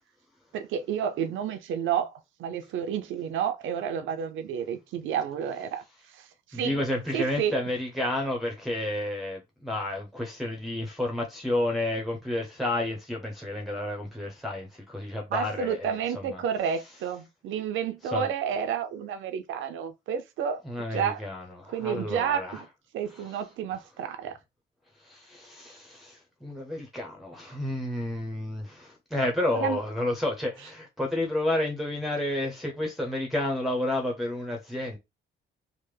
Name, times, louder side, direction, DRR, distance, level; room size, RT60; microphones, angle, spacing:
voice 1, 0.5-2.1 2.4-5.8 6.1-6.8 7.1-7.6 15.3-20.6 20.9-21.2 21.7-22.7 22.9-24.4 29.5-29.8, right 8 dB, 80° right, 0.6 m, -30 dB
voice 2, 6.5-16.4 18.1-18.3 20.6-22.6 25.0-35.0, left 1 dB, ahead, 0.7 m, -31 dB
3.3 x 2.1 x 3.2 m
cardioid pair, 90°, 20 cm